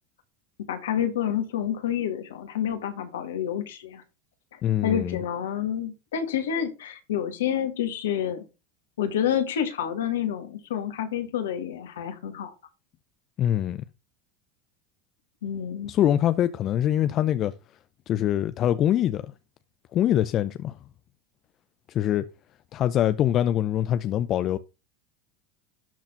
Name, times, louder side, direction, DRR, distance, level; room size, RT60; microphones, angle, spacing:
voice 1, 0.7-4.0 4.5-8.5 9.0-12.5 15.4-15.9, left 9 dB, 80° left, 2.1 m, -28 dB
voice 2, 4.6-5.2 13.4-13.8 15.9-17.5 18.1-19.3 19.9-20.8 21.9-22.3 22.7-24.6, left 11 dB, 45° left, 0.6 m, -24 dB
12.5 x 4.2 x 5.8 m
hypercardioid pair, 85°, 0 cm